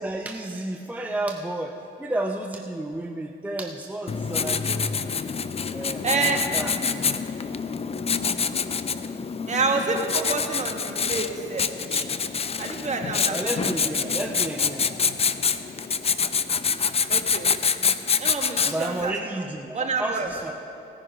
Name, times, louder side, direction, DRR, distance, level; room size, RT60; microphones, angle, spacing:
voice 1, 0.0-5.1 5.7-6.7 13.3-15.0 18.7-20.5, right 1 dB, 10° right, 3 dB, 0.6 m, -31 dB
Writing, 4.1-19.0, left 6 dB, 30° left, 0.5 m, -26 dB
voice 2, 6.0-6.4 9.5-12.1 12.6-14.2 17.1-17.5 18.2-19.4 19.7-20.3, right 4 dB, 35° right, 2 dB, 1.6 m, -28 dB
17.0 x 9.9 x 5.0 m, 2.8 s
cardioid pair, 90°, 20 cm